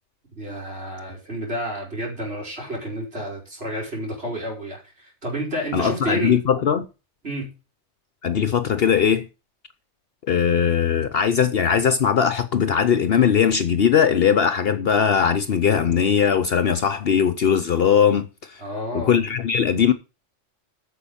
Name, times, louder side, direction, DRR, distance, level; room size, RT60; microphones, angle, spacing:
voice 1, 0.3-6.4 7.2-7.5 18.6-19.2, equal, 55° right, 5.5 m, -30 dB
voice 2, 5.7-6.9 8.2-9.3 10.3-18.6 18.9-19.9, left 7 dB, 60° left, 0.9 m, -20 dB
9.4 x 7.0 x 7.0 m
omnidirectional pair, 1.2 m